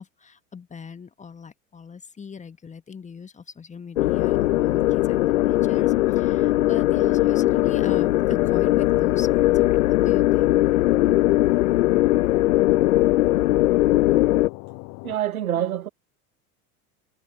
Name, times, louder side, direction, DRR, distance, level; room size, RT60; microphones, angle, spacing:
voice 1, 0.0-10.6 15.6-15.7, left 6 dB, 15° left, 1.7 m, -40 dB
sound 1, 4.0-14.5, left 16 dB, 65° left, 0.6 m, -20 dB
sound 2, 4.0-15.2, left 37 dB, 45° left, 1.0 m, -40 dB
voice 2, 15.0-15.9, right 11 dB, 70° right, 1.5 m, -26 dB
figure-of-eight pair, 80°, 44 cm